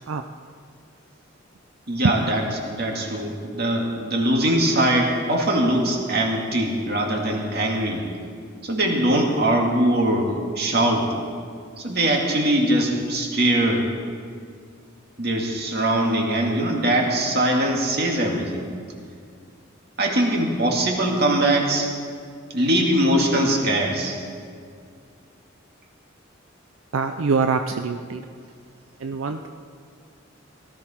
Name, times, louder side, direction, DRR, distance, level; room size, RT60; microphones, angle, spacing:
voice 1, 1.9-8.0 8.6-11.1 11.8-13.8 15.2-18.6 20.0-21.9 22.5-24.2, right 1 dB, 50° right, 0 dB, 2.1 m, -22 dB
voice 2, 26.9-28.2 29.0-29.5, right 4 dB, 85° right, 6 dB, 0.5 m, -23 dB
17.5 x 13.5 x 4.4 m, 2.2 s
head